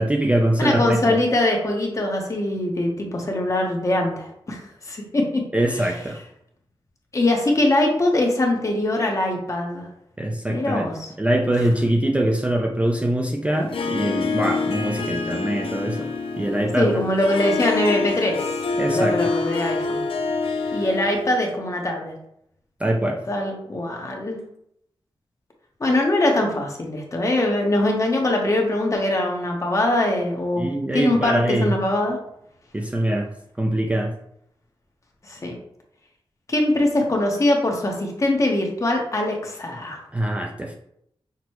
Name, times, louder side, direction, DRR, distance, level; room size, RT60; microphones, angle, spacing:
voice 1, 0.0-1.0 5.5-6.2 10.2-10.9 11.2-16.1 16.4-17.1 18.8-19.2 20.7-20.8 22.8-23.2 30.6-31.7 32.7-33.3 33.6-34.1 40.1-40.7, right 1 dB, 15° right, 0 dB, 0.4 m, -23 dB
voice 2, 0.6-5.4 5.7-5.9 7.1-9.9 10.5-11.1 16.8-18.4 18.8-20.0 20.7-22.1 23.3-24.4 25.8-30.7 30.9-32.2 35.2-35.6 36.5-40.0, left 1 dB, 35° left, 0 dB, 0.9 m, -22 dB
Harp, 13.5-21.4, left 4 dB, 75° left, 0.4 m, -26 dB
6.0 x 2.2 x 3.0 m, 0.73 s
wide cardioid pair, 115°, 9 cm